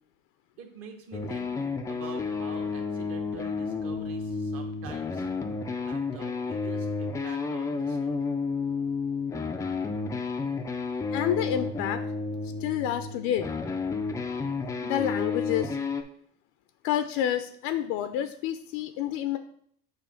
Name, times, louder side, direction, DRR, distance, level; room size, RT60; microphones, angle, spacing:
voice 1, 0.6-1.5 1.9-5.3 5.8-8.0, right 6 dB, 50° right, 4 dB, 1.3 m, -46 dB
sound 1, 1.1-16.0, left 4 dB, 10° left, 0.3 m, -31 dB
voice 2, 11.1-12.0 12.6-13.5 14.8-15.8 16.8-19.4, left 10 dB, 70° left, 9 dB, 0.5 m, -29 dB
6.9 x 2.7 x 5.7 m, 0.63 s
cardioid pair, 145°, 29 cm